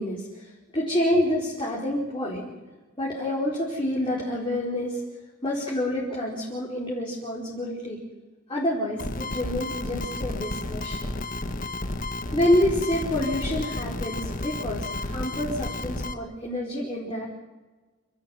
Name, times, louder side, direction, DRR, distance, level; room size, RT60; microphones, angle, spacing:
voice 1, 0.0-2.5 3.0-5.0 5.4-8.0 8.5-11.1 12.3-17.2, left 1 dB, 25° left, -5 dB, 4.9 m, -27 dB
sound 1, 9.0-16.1, left 2 dB, 40° left, 1.3 m, -32 dB
29.0 x 13.5 x 9.3 m, 1.2 s
head